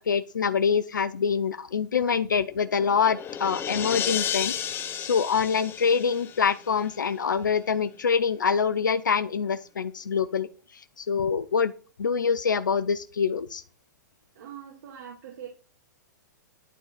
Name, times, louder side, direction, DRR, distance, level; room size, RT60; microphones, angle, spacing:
voice 1, 0.0-10.5 10.7-11.7 12.0-13.6, left 6 dB, 90° left, 13 dB, 0.6 m, -25 dB
sound 1, 2.5-7.1, left 9 dB, 20° left, 0.8 m, -33 dB
voice 2, 14.4-15.5, right 9 dB, 60° right, 0 dB, 2.4 m, -42 dB
11.5 x 4.0 x 7.5 m, 0.38 s
hypercardioid pair, 120°, 10 cm